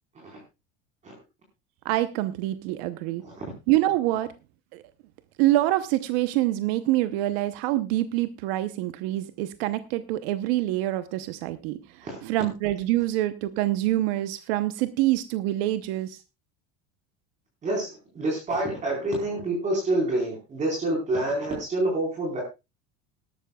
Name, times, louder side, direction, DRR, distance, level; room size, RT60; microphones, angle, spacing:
voice 1, 1.8-3.2 3.7-4.3 4.7-4.8 5.4-11.8 12.2-16.2, right 15 dB, 75° right, 11 dB, 0.9 m, -25 dB
voice 2, 3.2-3.5 12.0-12.2 17.6-22.4, right 2 dB, 25° right, -1 dB, 4.3 m, -27 dB
18.5 x 12.5 x 2.3 m, 0.25 s
cardioid pair, 170°, 30 cm